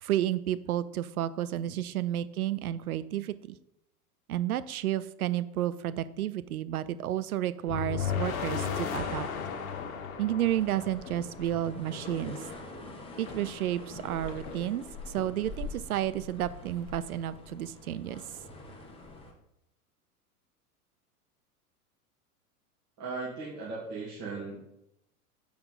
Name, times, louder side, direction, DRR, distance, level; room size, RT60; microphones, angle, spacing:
voice 1, 0.0-3.6 4.3-9.3 10.2-12.4 13.2-18.2, right 12 dB, 70° right, 14 dB, 0.5 m, -31 dB
sound 1, 7.7-11.7, left 7 dB, 65° left, 0.9 m, -34 dB
sound 2, 8.5-11.7 12.1-14.7, left 6 dB, 45° left, 0.8 m, -49 dB
sound 3, 10.4-19.3, left 2 dB, 10° left, 1.0 m, -44 dB
voice 2, 23.0-24.6, right 3 dB, 35° right, -7 dB, 2.0 m, -37 dB
7.2 x 4.7 x 3.9 m, 0.83 s
figure-of-eight pair, 90°, 46 cm